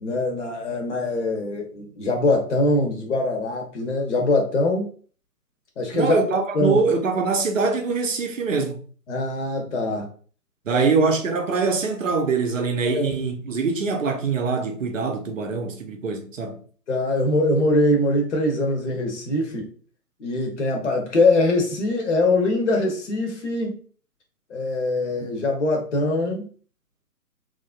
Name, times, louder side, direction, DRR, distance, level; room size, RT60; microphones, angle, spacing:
voice 1, 0.0-4.9 5.8-6.8 9.1-10.1 10.7-10.9 12.9-13.1 16.9-19.7 20.2-23.8 24.5-26.5, left 2 dB, 45° left, 0.8 m, -23 dB
voice 2, 5.9-8.8 10.7-16.6, right 4 dB, 50° right, 0.6 m, -23 dB
3.2 x 2.5 x 2.3 m
figure-of-eight pair, 140°, 49 cm